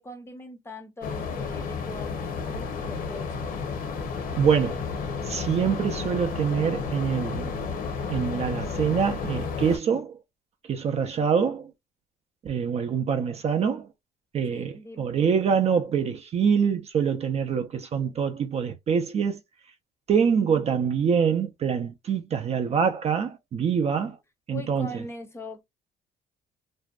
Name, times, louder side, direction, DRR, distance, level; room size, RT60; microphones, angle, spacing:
voice 1, 0.0-3.5 14.5-15.2 24.5-25.6, left 2 dB, 15° left, 0.6 m, -41 dB
sound 1, 1.0-9.8, left 5 dB, 60° left, 0.7 m, -32 dB
voice 2, 4.4-4.9 5.2-7.5 8.1-10.1 10.7-11.7 12.4-13.8 14.3-19.4 20.1-24.2 24.5-24.9, right 7 dB, 40° right, 0.4 m, -25 dB
2.6 x 2.1 x 2.3 m
cardioid pair, 110°, 17 cm